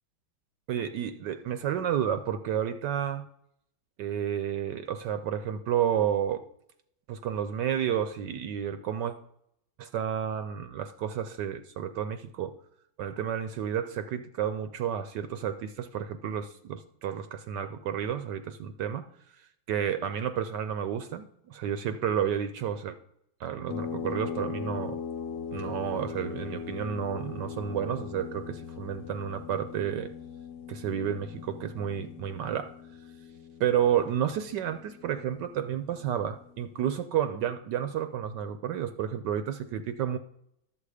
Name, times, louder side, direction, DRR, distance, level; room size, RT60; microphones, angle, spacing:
voice 1, 0.7-3.3 4.0-6.4 7.1-9.1 9.8-12.5 13.0-19.1 19.7-23.0 23.4-25.0 25.5-30.1 30.7-32.7 33.6-40.2, right 9 dB, 70° right, 10 dB, 1.1 m, -31 dB
sound 1, 23.7-36.8, left 7 dB, 70° left, 1.3 m, -40 dB
11.0 x 7.6 x 4.9 m, 0.74 s
omnidirectional pair, 2.2 m